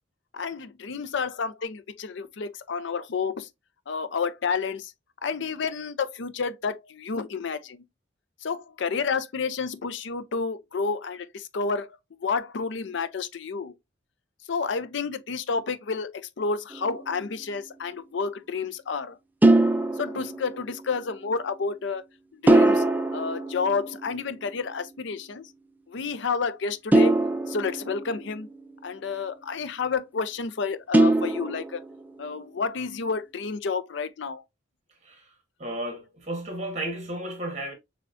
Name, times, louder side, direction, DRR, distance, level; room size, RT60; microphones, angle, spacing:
voice 1, 0.3-3.5 3.9-4.9 5.2-7.8 8.4-11.9 12.2-13.7 14.5-19.2 20.0-22.0 22.3-22.8 23.1-25.5 25.9-27.2 27.5-28.5 28.8-31.8 32.2-34.4, left 5 dB, 60° left, 0.5 m, -30 dB
sound 1, 16.7-17.2 19.4-20.9 22.5-24.4 26.9-28.6 30.9-32.1, right 2 dB, 10° right, 0.3 m, -22 dB
voice 2, 35.0-35.3 35.6-37.7, right 1 dB, 35° right, 1.4 m, -33 dB
6.7 x 2.3 x 2.5 m
head